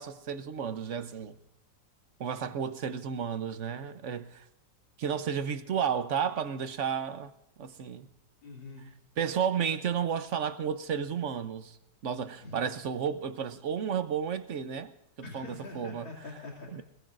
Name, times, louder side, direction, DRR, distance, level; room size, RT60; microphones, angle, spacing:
voice 1, 0.0-1.4 2.2-4.5 5.0-7.3 7.6-8.1 9.2-11.8 12.0-14.9 15.3-16.1 16.7-16.8, right 7 dB, 55° right, 0.9 m, -32 dB
voice 2, 8.4-8.9 12.4-12.6 15.2-16.7, left 3 dB, 85° left, 3.3 m, -44 dB
21.5 x 21.0 x 2.5 m
omnidirectional pair, 2.0 m